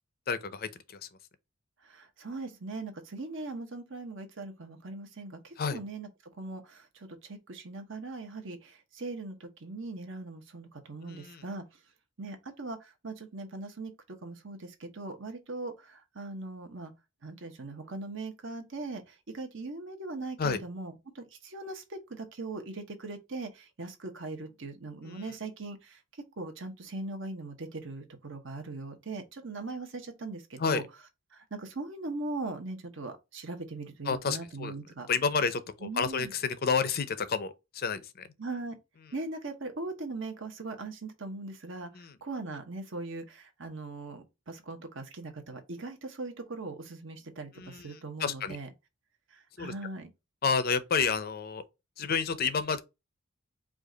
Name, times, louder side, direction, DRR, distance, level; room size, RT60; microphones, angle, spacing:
voice 1, 0.3-1.1 5.6-5.8 11.0-11.4 20.4-20.6 25.0-25.3 30.6-30.8 34.0-34.7 35.1-38.3 41.9-42.2 47.5-48.6 49.6-49.7 50.4-51.6 52.0-52.8, left 5 dB, 45° left, 0.6 m, -30 dB
voice 2, 1.8-6.1 6.4-11.6 12.2-13.9 14.2-16.9 17.2-26.0 26.4-30.8 31.3-35.1 35.8-36.3 38.4-38.8 39.1-48.7 49.3-50.1, right 3 dB, 60° right, 1.1 m, -40 dB
5.0 x 2.4 x 3.8 m
head